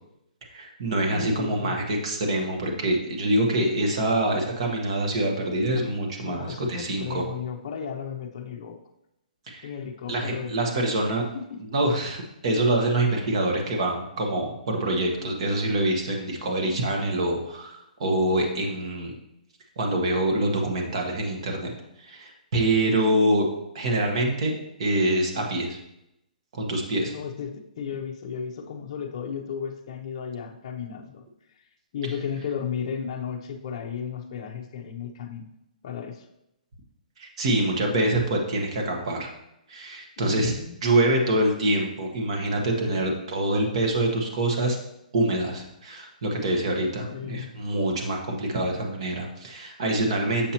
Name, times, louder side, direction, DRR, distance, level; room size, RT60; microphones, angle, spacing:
voice 1, 0.5-7.2 9.5-9.7 10.1-11.3 11.6-19.1 19.8-21.7 22.0-23.5 23.7-24.5 24.8-25.8 26.6-27.1 37.2-39.3 39.7-40.5 40.8-44.8 45.1-50.5, right 1 dB, 40° right, 1 dB, 1.3 m, -25 dB
voice 2, 1.1-1.8 6.2-8.8 9.6-10.8 11.3-11.6 27.0-31.2 31.9-35.5 35.8-36.3 40.2-40.7 42.8-43.0 47.0-47.5, left 7 dB, 35° left, 2 dB, 0.6 m, -34 dB
7.1 x 5.6 x 2.9 m, 0.84 s
hypercardioid pair, 170°, 5 cm